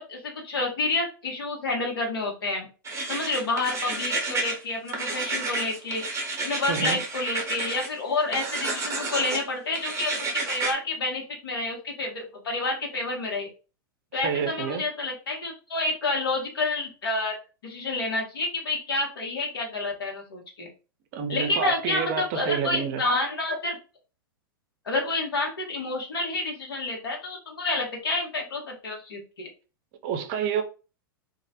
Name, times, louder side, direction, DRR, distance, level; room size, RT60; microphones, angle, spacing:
voice 1, 0.0-2.7 3.1-6.0 6.4-13.5 14.1-17.4 17.6-20.7 21.3-23.8 24.8-29.5, left 2 dB, 80° left, 1.0 m, -29 dB
sound 1, 2.8-4.6 4.9-7.9 8.3-9.4 9.7-10.7, right 3 dB, 25° right, 0.8 m, -30 dB
voice 2, 6.7-7.0 14.1-14.8 21.1-23.0 30.0-30.6, right 7 dB, 50° right, 0.5 m, -28 dB
2.3 x 2.0 x 2.7 m
hypercardioid pair, 105°, 12 cm